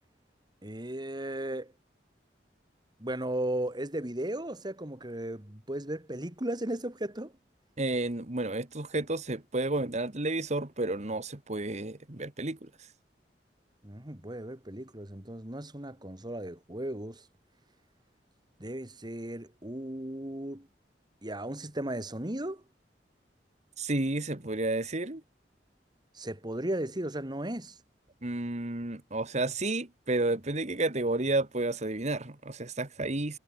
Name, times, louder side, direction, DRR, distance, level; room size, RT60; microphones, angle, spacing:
voice 1, 0.6-1.7 3.0-7.3 13.8-17.2 18.6-20.7 21.2-22.6 26.1-27.8, right 1 dB, 25° right, 2.6 m, -36 dB
voice 2, 7.8-12.7 23.8-25.2 28.2-33.4, right 2 dB, 40° right, 1.9 m, -31 dB
head